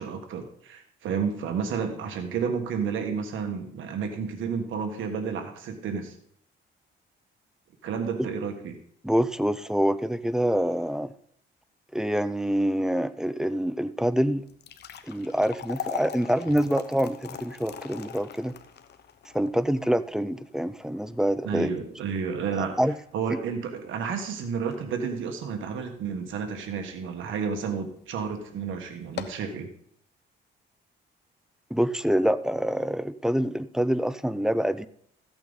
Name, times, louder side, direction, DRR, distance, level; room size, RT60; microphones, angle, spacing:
voice 1, 0.0-6.1 7.8-8.8 21.4-22.7 23.1-29.7, right 6 dB, 75° right, 5 dB, 1.5 m, -31 dB
voice 2, 9.0-11.1 11.9-14.4 15.1-18.5 19.3-21.7 22.6-23.0 23.3-23.4 31.7-34.9, equal, 5° right, 15 dB, 0.5 m, -26 dB
sound 1, 14.4-26.7 27.1-27.2 27.9-28.1 28.4-28.5 29.0-29.5, left 8 dB, 55° left, 1.0 m, -41 dB
14.0 x 8.8 x 4.0 m, 0.65 s
cardioid pair, 90°, 20 cm